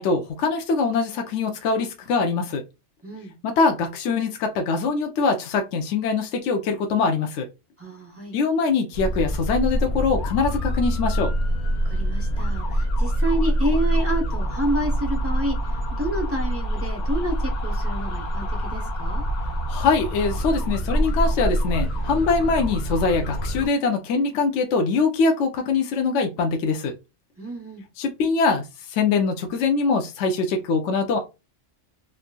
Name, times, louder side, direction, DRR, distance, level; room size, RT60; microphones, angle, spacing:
voice 1, 0.0-2.6 3.4-7.5 8.3-11.3 19.7-26.9 28.0-31.2, left 4 dB, 75° left, 4 dB, 0.9 m, -23 dB
voice 2, 7.8-8.3 11.8-15.6 15.9-19.2 27.4-27.8, right 1 dB, 20° right, 0 dB, 0.4 m, -29 dB
sound 1, 8.9-23.7, equal, 50° left, 0.6 m, -25 dB
3.5 x 2.5 x 2.2 m, 0.27 s
omnidirectional pair, 1.3 m